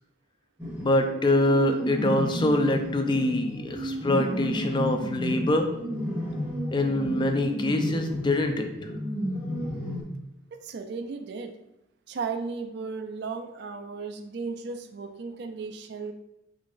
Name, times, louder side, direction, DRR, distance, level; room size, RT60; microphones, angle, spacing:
sound 1, 0.6-10.0, equal, 10° right, 0.9 m, -32 dB
voice 1, 0.8-5.7 6.7-8.7, left 1 dB, 25° left, 5 dB, 0.3 m, -24 dB
voice 2, 10.6-11.5 12.1-16.1, right 4 dB, 55° right, 6 dB, 0.4 m, -35 dB
3.7 x 3.6 x 2.5 m, 0.85 s
head